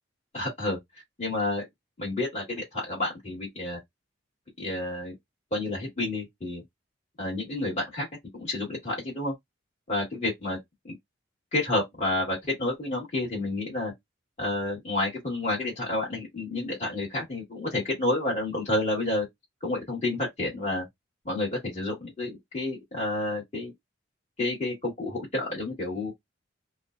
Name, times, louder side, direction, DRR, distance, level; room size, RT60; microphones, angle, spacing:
voice 1, 0.3-0.8 1.2-1.7 2.0-3.8 4.6-5.1 5.5-6.6 7.2-8.1 8.3-9.3 9.9-10.6 10.8-11.0 11.5-13.9 14.4-19.3 19.6-20.9 21.3-23.7 24.4-26.1, left 2 dB, 35° left, 1.7 m, -30 dB
4.0 x 2.2 x 2.5 m
head